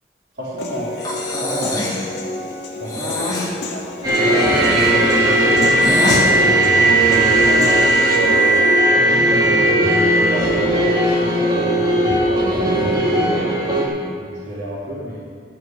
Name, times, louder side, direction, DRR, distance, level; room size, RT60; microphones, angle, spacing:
voice 1, 0.3-0.9 1.4-1.9 2.8-3.2 4.2-8.7 9.9-13.5 14.2-15.2, equal, 80° right, -10 dB, 3.1 m, -30 dB
Human voice / Piano, 0.6-8.6, left 1 dB, 75° left, 1.7 m, -30 dB
Breathing, 1.0-2.1 2.8-3.5 4.3-6.3, left 2 dB, 20° left, 1.7 m, -25 dB
sound 1, 4.0-13.9, right 1 dB, 20° right, 2.3 m, -16 dB
12.5 x 7.1 x 6.1 m, 2.2 s
head